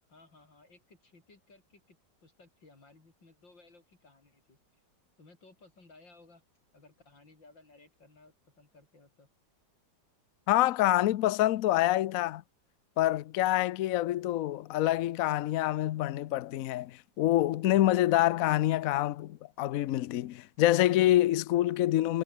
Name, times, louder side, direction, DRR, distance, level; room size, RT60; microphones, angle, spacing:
voice 1, 0.1-2.0 2.2-4.8 5.2-6.4 6.7-9.3, left 3 dB, 90° left, 6.2 m, -59 dB
voice 2, 10.5-12.4 13.0-22.2, left 14 dB, 65° left, 0.8 m, -26 dB
omnidirectional pair, 2.0 m